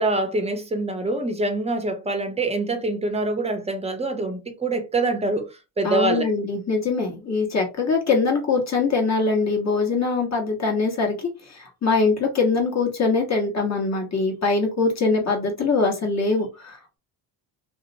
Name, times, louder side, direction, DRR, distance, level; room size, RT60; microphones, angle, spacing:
voice 1, 0.0-5.5 5.8-6.2, right 2 dB, 15° right, 0.6 m, -25 dB
voice 2, 5.8-17.0, left 4 dB, 40° left, 1.2 m, -23 dB
2.7 x 2.0 x 2.7 m
cardioid pair, 90°, 44 cm